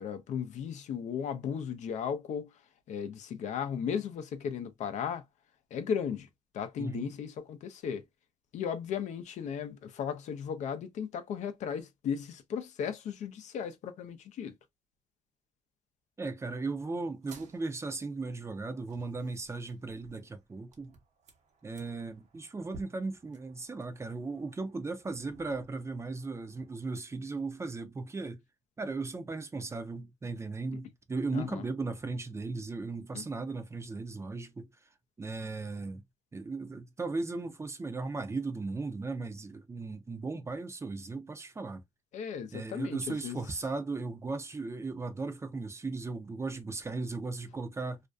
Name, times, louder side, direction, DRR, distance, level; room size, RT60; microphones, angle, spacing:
voice 1, 0.0-2.6 2.9-5.2 5.7-6.3 6.5-8.0 8.5-14.5 31.3-31.6 33.1-33.2 42.1-43.5, left 7 dB, 65° left, 0.5 m, -36 dB
voice 2, 6.8-7.1 16.2-20.9 21.6-28.4 28.8-34.7 35.2-36.0 36.3-41.8 42.5-48.0, right 3 dB, 20° right, 0.5 m, -37 dB
sound 1, 17.1-26.7, right 3 dB, 60° right, 0.8 m, -57 dB
2.5 x 2.2 x 2.4 m
cardioid pair, 90°, 13 cm